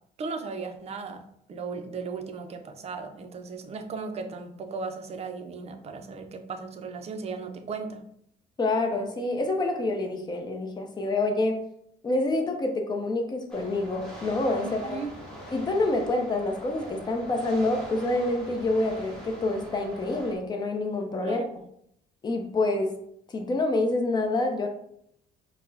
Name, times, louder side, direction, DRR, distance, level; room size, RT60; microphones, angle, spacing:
voice 1, 0.2-1.2 1.5-8.0 14.6-15.1 21.3-21.5, right 4 dB, 40° right, 6 dB, 0.5 m, -36 dB
voice 2, 8.6-11.6 12.0-15.0 15.5-21.4 22.2-22.9 23.3-24.7, left 2 dB, 25° left, 3 dB, 0.6 m, -27 dB
sound 1, 13.5-20.4, equal, 5° left, 1.0 m, -43 dB
4.4 x 2.1 x 2.7 m, 0.73 s
cardioid pair, 110°, 17 cm